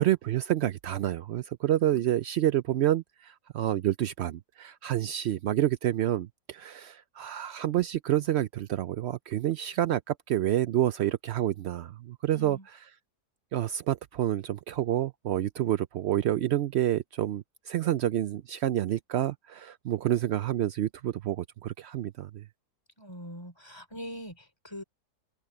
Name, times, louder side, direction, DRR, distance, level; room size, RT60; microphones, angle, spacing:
voice 1, 0.0-12.6 13.5-22.4, right 12 dB, 85° right, 0.5 m, -28 dB
voice 2, 12.3-12.7 23.0-24.8, equal, 15° left, 4.0 m, -42 dB
omnidirectional pair, 1.7 m